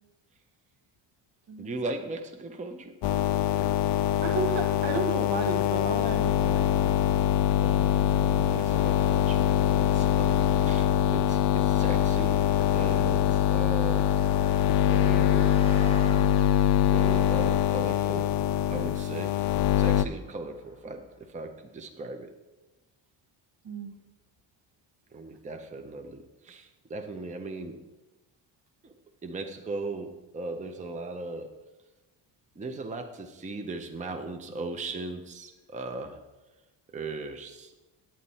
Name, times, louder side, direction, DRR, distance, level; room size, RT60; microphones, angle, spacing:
voice 1, 1.6-3.3 7.6-14.1 14.8-15.6 16.8-18.4 18.7-19.4 19.8-22.3 25.1-27.9 28.8-28.9 29.2-31.6 32.6-36.2 36.9-37.7, right 3 dB, 15° right, 6 dB, 0.6 m, -38 dB
sound 1, 3.0-20.0, left 11 dB, 65° left, 0.5 m, -24 dB
voice 2, 4.2-6.9 16.4-16.5 23.6-24.0, right 4 dB, 65° right, 5 dB, 1.2 m, -33 dB
Car passing by, 5.7-21.3, left 3 dB, 15° left, 1.0 m, -49 dB
9.2 x 8.8 x 4.1 m, 1.1 s
wide cardioid pair, 140°, 45 cm